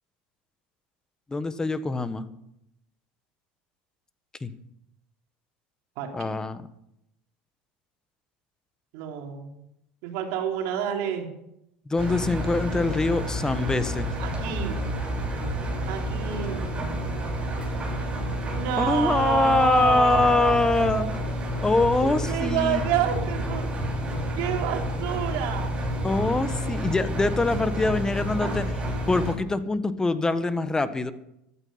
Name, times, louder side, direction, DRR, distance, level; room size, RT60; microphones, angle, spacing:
voice 1, 1.3-2.2 4.4-4.5 6.1-6.7 11.9-14.1 18.8-21.1 21.6-22.8 26.0-31.1, left 3 dB, 15° left, 12 dB, 1.3 m, -24 dB
voice 2, 8.9-9.5 10.0-11.3 14.2-14.8 15.9-16.7 18.4-21.2 22.0-23.7 24.4-25.7, right 10 dB, 70° right, 2 dB, 3.7 m, -29 dB
Engine, 12.0-29.3, equal, 25° right, 7.0 m, -29 dB
15.0 x 12.5 x 5.7 m, 0.79 s
supercardioid pair, 100°, 5 cm